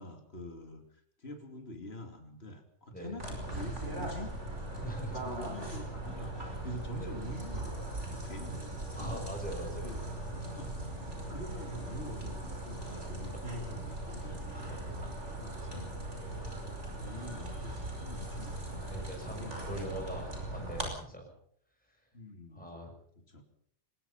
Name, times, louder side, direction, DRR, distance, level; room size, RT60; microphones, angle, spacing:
voice 1, 0.0-4.3 4.7-4.8 5.2-9.3 9.7-10.1 10.6-10.8 11.3-14.7 15.2-15.9 17.0-19.0 19.3-20.1 20.5-20.7 22.1-22.7 23.2-23.4, left 1 dB, 60° left, 5 dB, 3.0 m, -46 dB
sound 1, 3.2-20.9, right 1 dB, 85° right, 5.7 m, -39 dB
voice 2, 4.8-5.3 7.0-7.1 8.5-8.6 8.9-9.9 13.3-13.4 14.3-15.4 16.4-16.5 17.0-17.1 18.9-21.3 22.5-22.9, right 1 dB, 5° left, 1 dB, 6.8 m, -43 dB
23.0 x 20.5 x 5.7 m, 0.62 s
omnidirectional pair, 1.2 m